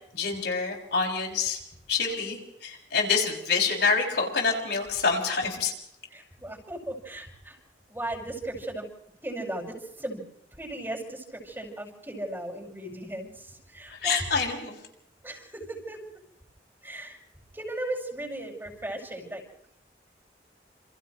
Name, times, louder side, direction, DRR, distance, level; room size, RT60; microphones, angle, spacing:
voice 1, 0.2-1.6 1.9-5.7 14.0-14.8, left 4 dB, 70° left, 0 dB, 6.6 m, -26 dB
voice 2, 6.1-7.6 7.9-8.9 9.2-10.2 10.5-14.6 15.2-16.0 16.8-17.2 17.5-19.4, right 1 dB, 15° right, 0 dB, 5.9 m, -36 dB
29.0 x 29.0 x 3.2 m, 0.77 s
head